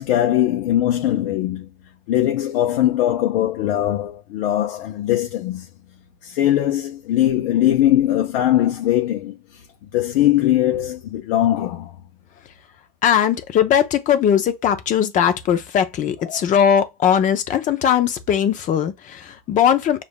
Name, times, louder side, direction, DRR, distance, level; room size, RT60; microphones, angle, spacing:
voice 1, 0.0-1.7 2.1-5.7 6.2-9.6 9.9-12.0 16.2-16.4, left 12 dB, 70° left, 0.7 m, -20 dB
voice 2, 13.0-20.0, left 9 dB, 25° left, 0.6 m, -19 dB
6.9 x 2.6 x 2.2 m
supercardioid pair, 145°, 30 cm